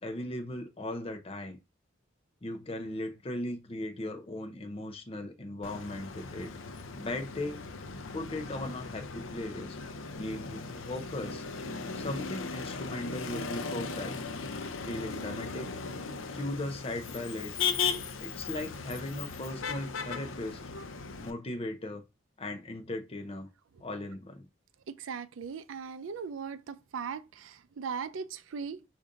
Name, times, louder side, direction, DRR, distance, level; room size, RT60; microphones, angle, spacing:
voice 1, 0.0-1.6 2.4-6.5 6.9-7.6 8.1-9.8 10.2-11.4 11.9-14.2 14.8-15.7 16.3-17.7 18.2-20.6 21.2-22.0 22.4-23.5 23.8-24.5, left 1 dB, 30° left, 0.7 m, -38 dB
Motor vehicle (road), 5.6-21.3, left 5 dB, 80° left, 0.6 m, -37 dB
voice 2, 24.9-28.8, right 6 dB, 85° right, 0.4 m, -39 dB
5.0 x 2.6 x 3.8 m
head